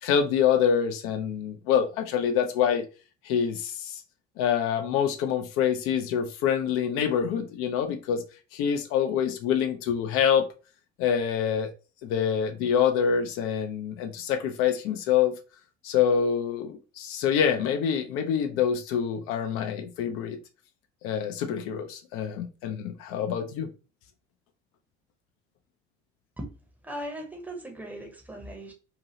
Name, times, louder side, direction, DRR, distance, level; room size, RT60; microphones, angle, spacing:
voice 1, 0.0-2.8 3.2-4.0 4.4-8.2 8.5-10.5 11.0-11.7 12.0-15.3 15.8-20.4 21.0-23.7, left 8 dB, 45° left, 6 dB, 0.5 m, -26 dB
voice 2, 26.8-28.7, equal, 5° right, 1 dB, 0.8 m, -38 dB
2.7 x 2.6 x 2.8 m, 0.34 s
figure-of-eight pair, 60°, 32 cm